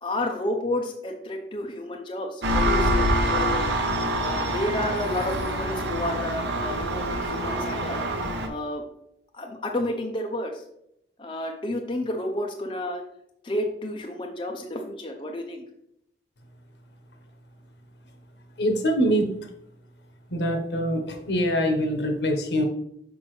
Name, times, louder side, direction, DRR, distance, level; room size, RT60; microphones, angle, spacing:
voice 1, 0.0-3.7 4.1-8.1 8.4-8.8 9.3-10.6 11.2-13.0 13.4-15.6, left 1 dB, 30° left, 2 dB, 0.6 m, -31 dB
Engine, 2.4-8.5, right 1 dB, 75° right, 0.9 m, -25 dB
voice 2, 18.6-19.5 20.3-22.6, equal, 75° left, 4 dB, 1.1 m, -24 dB
6.1 x 5.3 x 3.2 m, 0.76 s
head